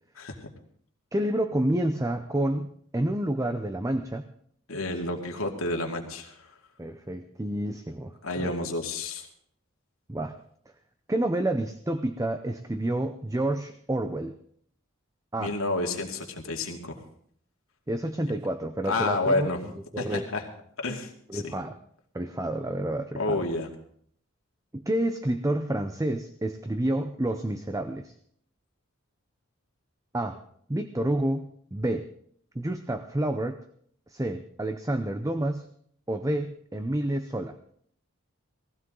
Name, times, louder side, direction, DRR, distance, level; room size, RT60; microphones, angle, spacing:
voice 1, 1.1-4.3 6.8-8.5 10.1-10.4 11.1-14.4 15.3-15.5 17.9-19.5 19.9-20.3 21.3-21.7 22.1-23.4 24.7-28.1 30.1-30.4 30.7-32.1 32.5-33.6 34.1-35.7 36.1-37.6, right 1 dB, 15° right, 8 dB, 0.6 m, -29 dB
voice 2, 4.7-6.4 8.2-9.3 15.4-17.0 18.8-19.6 20.0-20.5 20.8-21.5 23.2-23.7, left 2 dB, 75° left, 1 dB, 2.5 m, -30 dB
19.0 x 15.0 x 3.8 m, 0.63 s
head